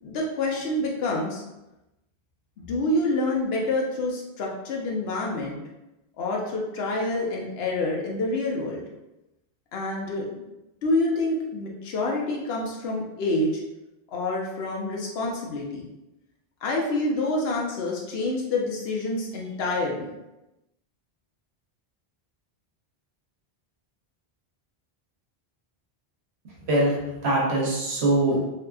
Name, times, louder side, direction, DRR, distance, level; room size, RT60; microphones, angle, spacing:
voice 1, 0.0-1.4 2.6-5.6 6.2-8.8 9.7-10.3 10.8-13.6 14.1-15.9 16.6-20.1, left 2 dB, 75° left, -2 dB, 0.8 m, -27 dB
voice 2, 26.7-28.5, right 1 dB, 85° right, -4 dB, 1.0 m, -23 dB
2.7 x 2.4 x 2.2 m, 0.97 s
omnidirectional pair, 1.1 m